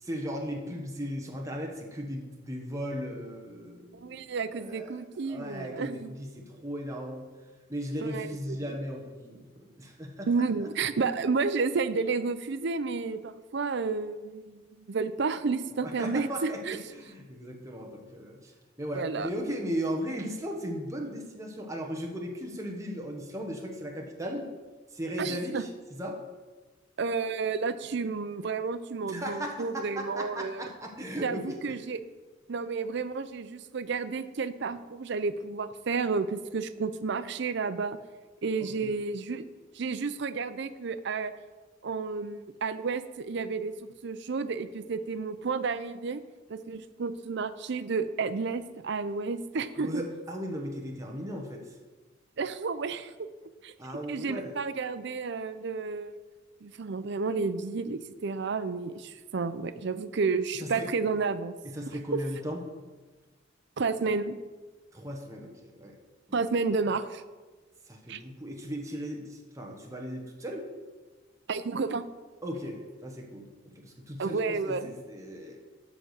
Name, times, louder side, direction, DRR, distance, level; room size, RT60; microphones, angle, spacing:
voice 1, 0.0-4.2 4.5-4.9 5.3-7.3 7.7-10.3 15.8-18.5 18.8-24.5 24.9-26.2 29.1-31.8 38.6-38.9 49.8-51.6 53.8-54.5 60.6-60.9 61.6-62.6 64.9-65.9 66.3-66.4 67.9-70.6 72.4-75.6, equal, 15° right, 1 dB, 1.2 m, -37 dB
voice 2, 4.0-6.1 8.0-8.8 10.3-16.8 18.9-19.3 25.2-25.6 27.0-30.7 31.2-32.0 32.5-38.0 38.4-39.5 39.7-41.3 41.8-46.2 46.5-50.0 52.4-53.1 53.6-53.7 54.1-56.2 56.6-61.5 62.1-62.2 63.8-64.4 66.3-67.2 68.1-68.2 71.5-72.0 74.2-74.9, right 4 dB, 60° right, 12 dB, 0.5 m, -31 dB
7.8 x 6.0 x 6.5 m, 1.3 s
head